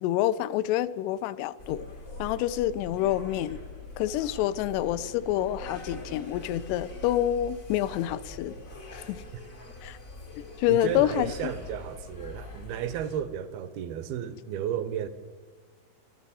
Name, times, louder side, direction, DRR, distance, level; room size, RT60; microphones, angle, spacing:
voice 1, 0.0-1.9 2.2-3.6 4.0-8.5 8.9-9.2 9.8-10.0 10.6-11.5, left 13 dB, 80° left, 2.6 m, -27 dB
sound 1, 1.6-13.2, left 2 dB, 60° left, 0.8 m, -43 dB
voice 2, 10.7-15.1, right 9 dB, 75° right, 2.4 m, -33 dB
24.0 x 14.0 x 4.2 m
omnidirectional pair, 4.9 m